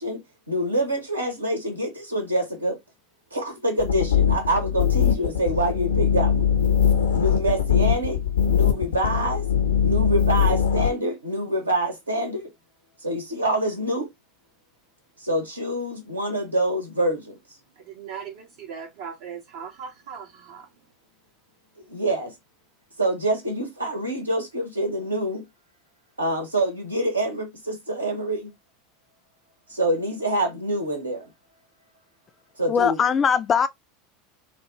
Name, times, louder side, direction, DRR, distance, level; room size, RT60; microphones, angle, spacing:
voice 1, 0.0-2.8 3.3-6.5 7.1-8.2 8.5-9.4 9.8-12.5 13.0-14.1 15.2-17.4 21.9-22.3 23.0-25.5 26.2-28.5 29.7-31.2 32.6-33.0, right 1 dB, 85° right, 1.0 m, -26 dB
sound 1, 3.8-10.9, left 8 dB, 70° left, 0.6 m, -21 dB
voice 2, 17.9-20.7, right 7 dB, 60° right, 0.7 m, -38 dB
voice 3, 32.7-33.7, left 7 dB, 30° left, 0.3 m, -20 dB
3.3 x 2.1 x 3.2 m
figure-of-eight pair, 80°, 0 cm